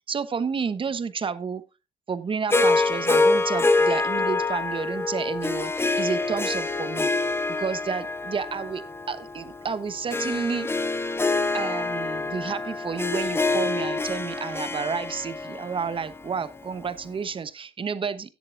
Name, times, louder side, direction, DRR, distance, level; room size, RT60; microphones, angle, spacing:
voice 1, 0.1-1.6 2.1-7.1 7.5-8.8 9.1-10.7 11.5-18.3, right 6 dB, 30° right, 13 dB, 1.0 m, -30 dB
Harp, 2.5-16.9, left 3 dB, 15° left, 0.8 m, -26 dB
18.0 x 7.8 x 2.6 m, 0.26 s
cardioid pair, 110°, 17 cm